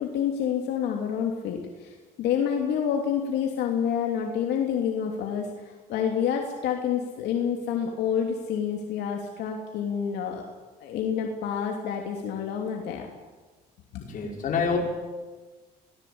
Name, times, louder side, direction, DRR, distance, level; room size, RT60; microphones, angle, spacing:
voice 1, 0.0-10.4 10.8-13.1 13.9-14.0, left 8 dB, 80° left, 2 dB, 3.0 m, -28 dB
voice 2, 14.1-14.8, left 6 dB, 55° left, 1 dB, 5.8 m, -26 dB
24.0 x 18.5 x 8.7 m, 1.3 s
cardioid pair, 110°, 17 cm